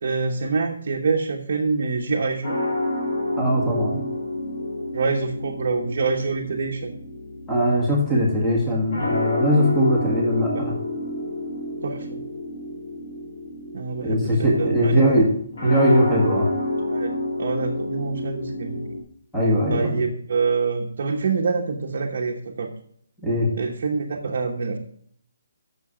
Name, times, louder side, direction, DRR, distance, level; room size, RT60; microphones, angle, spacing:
voice 1, 0.0-2.6 4.9-7.0 11.8-12.2 13.7-15.0 16.9-17.1 17.4-18.9 19.7-22.7 23.5-24.8, right 4 dB, 45° right, 0 dB, 1.0 m, -26 dB
sound 1, 2.4-19.0, left 1 dB, 55° left, 2.8 m, -29 dB
voice 2, 3.4-4.0 7.5-10.7 14.0-15.3 15.6-16.5 19.3-20.0 23.2-23.5, equal, 5° left, -7 dB, 1.8 m, -20 dB
8.3 x 6.7 x 5.0 m, 0.64 s
hypercardioid pair, 175°, 0 cm